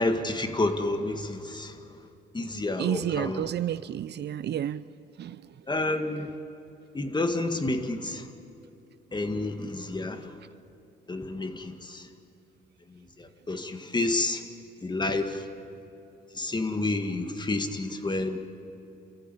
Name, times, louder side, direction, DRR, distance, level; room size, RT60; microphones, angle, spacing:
voice 1, 0.0-2.0 2.3-3.5 5.7-6.4 6.9-8.3 9.1-10.4 11.1-12.1 12.9-14.4 14.8-15.5 16.3-18.4, left 2 dB, 20° left, 7 dB, 1.9 m, -30 dB
voice 2, 2.8-4.9 5.2-5.4, right 10 dB, 60° right, 16 dB, 0.5 m, -30 dB
28.5 x 14.5 x 10.0 m, 2.8 s
cardioid pair, 90°, 20 cm